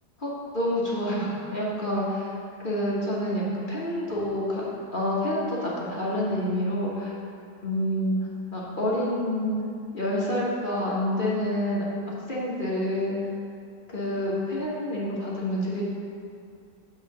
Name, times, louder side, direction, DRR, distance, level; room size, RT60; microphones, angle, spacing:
voice 1, 0.2-2.3 2.6-4.6 4.9-7.1 7.6-8.2 8.5-9.6 9.9-13.2 13.9-15.8, left 1 dB, 35° left, -6 dB, 1.2 m, -28 dB
8.0 x 3.7 x 6.5 m, 2.5 s
omnidirectional pair, 1.8 m